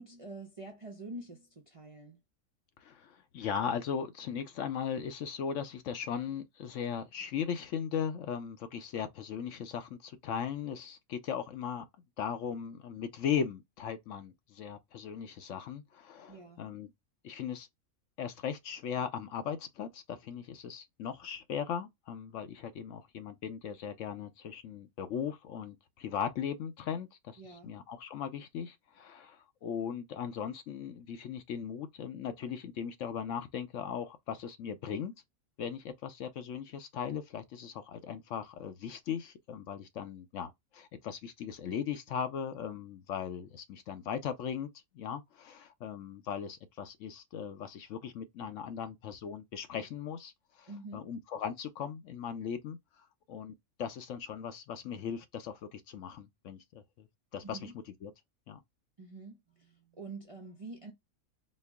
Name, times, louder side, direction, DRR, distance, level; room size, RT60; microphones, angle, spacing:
voice 1, 0.0-2.2 16.3-16.7 27.4-27.7 50.7-51.0 57.4-57.7 59.0-60.9, right 2 dB, 40° right, 0.5 m, -46 dB
voice 2, 2.8-11.8 12.2-16.9 17.2-17.7 18.2-35.1 35.6-44.7 44.9-52.8 53.3-57.1 57.3-57.7 58.0-58.1 58.5-58.6, left 7 dB, 65° left, 0.9 m, -38 dB
4.3 x 2.0 x 3.4 m
omnidirectional pair, 1.5 m